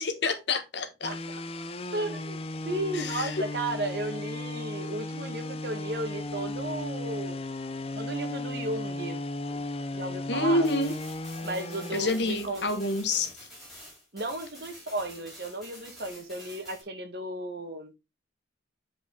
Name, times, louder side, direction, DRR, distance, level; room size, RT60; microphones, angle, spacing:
voice 1, 0.0-1.1 2.9-3.4 10.3-11.0 11.9-13.3, left 2 dB, 70° left, 1.3 m, -28 dB
sound 1, 1.0-13.3, left 2 dB, 30° left, 0.6 m, -36 dB
voice 2, 1.0-1.4 1.9-2.4 2.6-7.4 7.9-9.2 9.5-9.6 9.9-10.7 11.4-12.6 14.1-17.9, right 2 dB, 55° right, 1.6 m, -34 dB
sound 2, 10.6-16.8, equal, ahead, 4.6 m, -49 dB
8.2 x 5.1 x 3.7 m
head